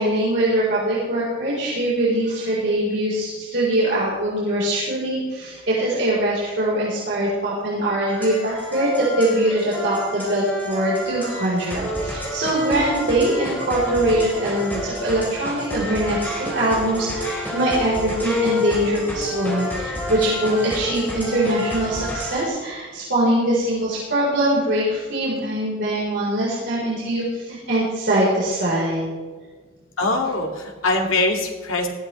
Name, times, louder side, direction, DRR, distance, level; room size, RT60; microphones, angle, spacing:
voice 1, 0.0-29.1, right 1 dB, 60° right, -7 dB, 4.1 m, -22 dB
sound 1, 8.1-22.5, left 1 dB, 10° left, 4.1 m, -29 dB
voice 2, 30.0-31.9, left 2 dB, 90° left, 1 dB, 2.3 m, -22 dB
19.0 x 14.0 x 3.3 m, 1.4 s
head